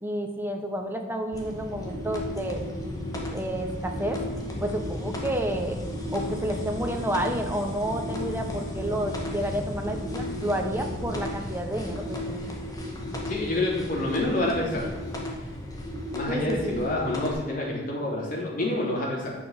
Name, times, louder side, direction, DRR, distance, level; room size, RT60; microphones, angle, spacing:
voice 1, 0.0-2.6 3.3-4.2 4.6-5.8 6.1-12.4 16.3-16.8, right 1 dB, 10° right, 3 dB, 1.2 m, -30 dB
sound 1, 1.3-17.3, left 1 dB, 20° left, 1.8 m, -34 dB
voice 2, 13.3-14.9 16.1-19.3, left 1 dB, 50° left, -3 dB, 3.3 m, -28 dB
10.5 x 6.1 x 6.6 m, 1.1 s
head